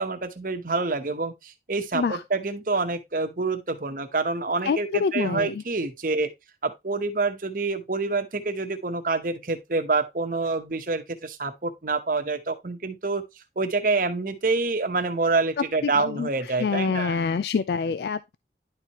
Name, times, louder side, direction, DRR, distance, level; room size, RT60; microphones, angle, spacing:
voice 1, 0.0-6.3 6.6-13.2 13.6-17.2, right 3 dB, 50° right, 1.0 m, -27 dB
voice 2, 4.7-5.6 15.8-16.3 16.6-18.4, left 5 dB, 65° left, 0.3 m, -26 dB
10.5 x 4.6 x 2.9 m
head